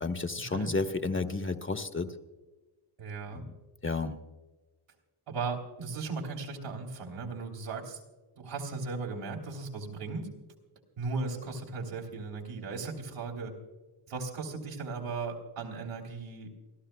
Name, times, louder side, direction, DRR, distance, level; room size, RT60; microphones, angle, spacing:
voice 1, 0.0-2.1 3.3-3.5 3.8-4.1, left 3 dB, 25° left, 7 dB, 1.1 m, -32 dB
voice 2, 3.0-3.4 5.3-8.0 8.4-10.3 11.0-13.5 14.1-16.5, right 4 dB, 85° right, 0 dB, 3.4 m, -37 dB
28.5 x 13.0 x 2.3 m, 1.2 s
cardioid pair, 85°, 50 cm